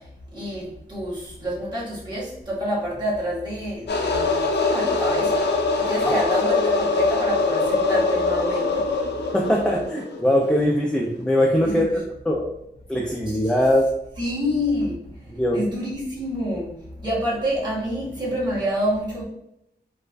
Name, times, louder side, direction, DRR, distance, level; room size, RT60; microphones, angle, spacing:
voice 1, 0.3-4.3 4.7-5.4 5.8-8.8 11.6-12.0 13.2-13.4 14.2-15.0 15.5-16.7 17.0-19.2, equal, 25° right, -7 dB, 1.5 m, -27 dB
sound 1, 3.9-10.5, left 3 dB, 80° left, 0.5 m, -23 dB
voice 2, 9.3-12.0 12.2-12.4 12.9-13.9 15.3-15.6, equal, 5° left, -1 dB, 0.4 m, -21 dB
4.5 x 2.4 x 2.3 m, 0.81 s
wide cardioid pair, 115°, 17 cm